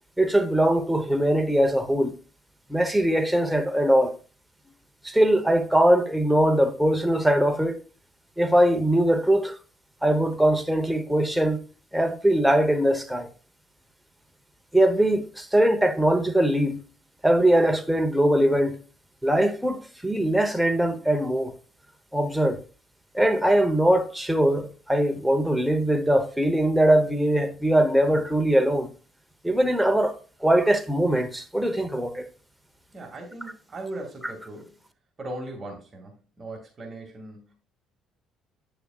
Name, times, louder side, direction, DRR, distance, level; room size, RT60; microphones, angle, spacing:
voice 1, 0.2-2.1 2.7-4.1 5.0-7.8 8.4-9.6 10.0-11.6 11.9-13.3 14.7-16.8 17.2-18.8 19.2-21.5 22.1-22.6 23.1-28.9 29.4-32.3, right 1 dB, 5° right, 1.0 m, -21 dB
voice 2, 32.9-34.7 35.2-37.5, right 2 dB, 30° right, 2.2 m, -38 dB
8.8 x 6.7 x 2.4 m
cardioid pair, 115°, 0 cm